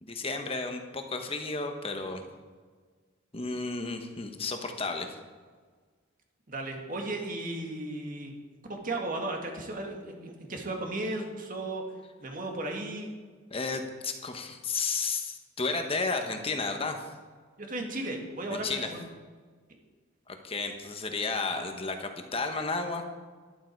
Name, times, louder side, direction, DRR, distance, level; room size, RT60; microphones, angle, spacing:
voice 1, 0.0-2.2 3.3-5.2 13.5-17.1 18.5-18.9 20.3-23.0, left 3 dB, 30° left, 5 dB, 1.3 m, -32 dB
voice 2, 6.5-8.3 8.7-11.8 12.2-13.1 17.6-19.0, right 2 dB, 40° right, 2 dB, 2.1 m, -35 dB
12.5 x 11.5 x 4.7 m, 1.5 s
head